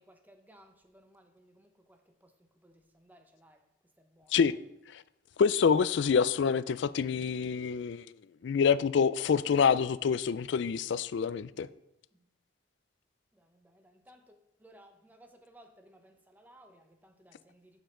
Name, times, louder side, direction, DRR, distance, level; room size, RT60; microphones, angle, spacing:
voice 1, 0.0-1.5 2.6-2.7 3.0-3.6 4.2-4.3 13.8-14.4 14.6-17.7, right 1 dB, 10° right, 0.8 m, -58 dB
voice 2, 5.4-8.0 8.4-11.7, left 6 dB, 60° left, 0.3 m, -26 dB
9.1 x 7.2 x 3.7 m
head